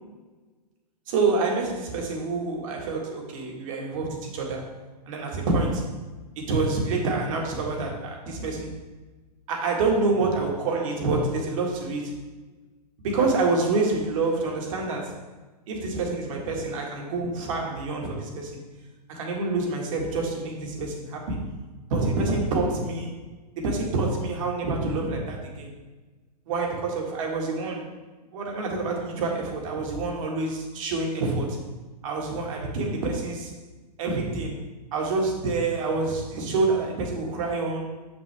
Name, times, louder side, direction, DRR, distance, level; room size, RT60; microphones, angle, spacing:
voice 1, 1.1-4.7 5.1-5.9 6.4-8.8 9.5-12.1 13.0-15.2 15.7-18.6 19.1-21.4 21.9-23.1 23.6-25.7 26.5-27.9 28.3-31.6 32.0-33.5 34.0-34.6 34.9-37.9, right 3 dB, 50° right, 0 dB, 1.9 m, -27 dB
7.1 x 6.1 x 3.5 m, 1.3 s
hypercardioid pair, 130°, 21 cm